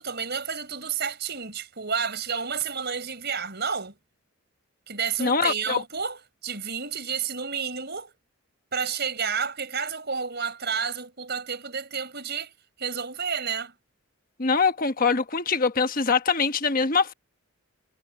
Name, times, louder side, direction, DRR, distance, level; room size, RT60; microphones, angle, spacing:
voice 1, 0.0-4.0 4.9-8.1 8.7-12.5 12.8-13.7, right 6 dB, 50° right, 4.8 m, -30 dB
voice 2, 5.2-5.8 14.4-17.1, left 5 dB, 40° left, 1.3 m, -23 dB
head